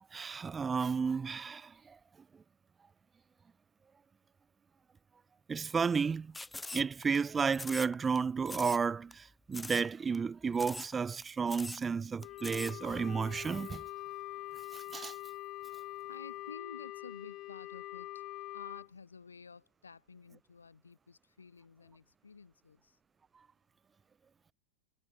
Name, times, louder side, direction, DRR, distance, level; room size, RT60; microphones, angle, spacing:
voice 1, 0.1-2.0 5.5-6.3 6.7-13.8 14.7-15.1, right 5 dB, 15° right, 0.5 m, -32 dB
sound 1, 6.3-7.2 7.5-8.2 8.5-8.8 9.1-9.2 9.5-9.9 10.1-10.2 10.5-10.9 11.2-11.3 11.5-11.8 12.2-12.7, left 2 dB, 10° left, 1.0 m, -43 dB
Wind instrument woodwind instrument, 12.2-18.9, left 17 dB, 35° left, 3.1 m, -44 dB
voice 2, 16.0-18.2 18.5-23.0, left 5 dB, 75° left, 3.5 m, -52 dB
figure-of-eight pair, 90°, 0 cm